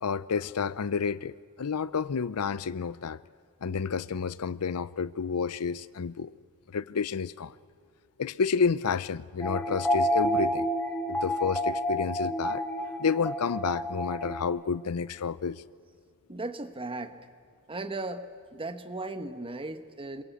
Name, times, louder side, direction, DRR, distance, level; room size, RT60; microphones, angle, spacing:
voice 1, 0.0-3.2 3.6-6.3 6.7-7.5 8.2-10.6 11.1-12.6 13.0-15.6, left 5 dB, 85° left, 0.6 m, -30 dB
sound 1, 9.4-14.4, equal, 10° left, 1.9 m, -29 dB
voice 2, 16.3-17.2 17.7-18.3 18.5-20.2, right 2 dB, 25° right, 1.3 m, -36 dB
27.5 x 22.5 x 8.3 m
head